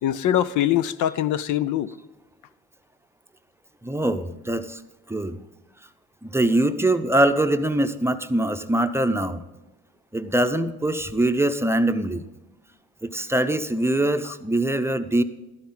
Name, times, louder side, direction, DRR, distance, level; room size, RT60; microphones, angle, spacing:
voice 1, 0.0-1.9 14.2-14.3, left 11 dB, 80° left, 0.6 m, -23 dB
voice 2, 3.8-4.8 5.1-5.4 6.2-9.4 10.1-12.2 13.0-15.2, right 1 dB, 10° right, 0.7 m, -23 dB
12.5 x 11.5 x 3.9 m
cardioid pair, 90°, 30 cm